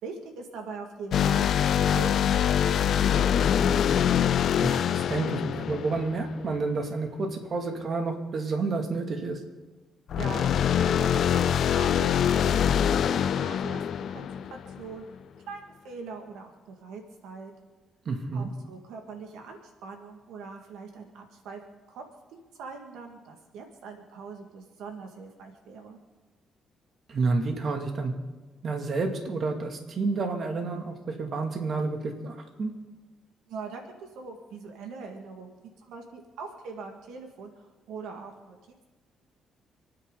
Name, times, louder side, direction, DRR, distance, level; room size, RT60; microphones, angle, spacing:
voice 1, 0.0-3.8 10.1-12.1 12.5-15.1 15.5-17.5 18.3-22.0 22.5-26.0 33.5-38.6, right 4 dB, 90° right, 3 dB, 2.0 m, -42 dB
sound 1, 1.1-6.6 10.1-14.9, left 9 dB, 65° left, 0.6 m, -24 dB
voice 2, 4.6-9.4 18.1-18.5 27.1-28.1 28.6-32.7, right 3 dB, 50° right, 3 dB, 2.4 m, -30 dB
29.5 x 9.9 x 3.9 m, 1.2 s
cardioid pair, 90°, 0 cm